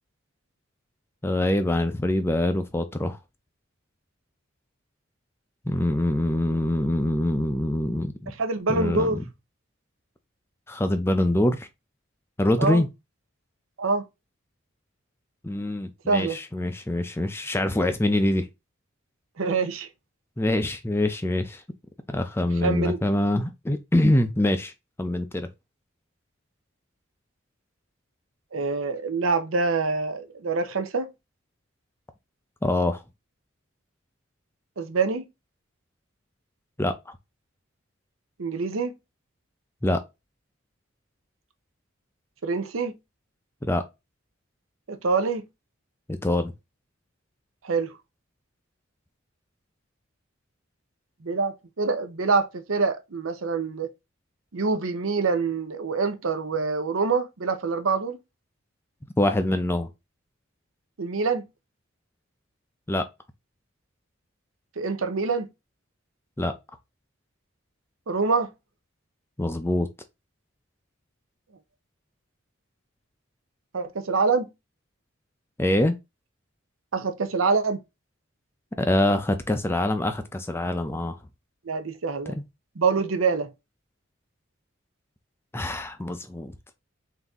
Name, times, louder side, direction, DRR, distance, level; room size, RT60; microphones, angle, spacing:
voice 1, 1.2-3.2 5.7-8.3 8.7-9.2 10.7-11.7 12.4-12.9 15.4-18.5 20.4-21.6 22.1-24.7 25.0-25.5 32.6-33.0 36.8-37.1 39.8-40.0 43.6-43.8 46.1-46.5 59.2-59.9 62.9-63.0 66.4-66.5 69.4-69.9 75.6-76.0 78.8-81.2 85.5-86.7, left 1 dB, 10° left, 0.4 m, -24 dB
voice 2, 8.4-9.2 12.6-12.8 13.8-14.1 16.1-16.4 19.4-19.9 22.6-23.0 28.5-31.1 34.8-35.2 38.4-38.9 42.4-43.0 44.9-45.4 47.6-48.0 51.2-53.9 54.5-58.2 61.0-61.4 64.8-65.5 68.1-68.5 73.7-74.5 76.9-77.8 81.6-82.4 82.8-83.5, right 4 dB, 85° right, 0.7 m, -25 dB
4.0 x 2.7 x 3.5 m
head